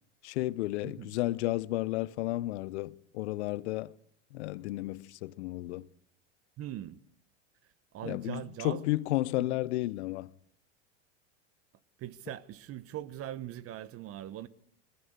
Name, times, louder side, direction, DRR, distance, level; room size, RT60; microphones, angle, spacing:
voice 1, 0.2-3.9 4.3-5.9 8.0-10.3, left 17 dB, 65° left, 0.9 m, -32 dB
voice 2, 6.6-7.0 7.9-8.9 9.4-9.5 12.0-14.5, right 12 dB, 40° right, 1.3 m, -41 dB
21.5 x 19.0 x 8.0 m
hypercardioid pair, 95°, 36 cm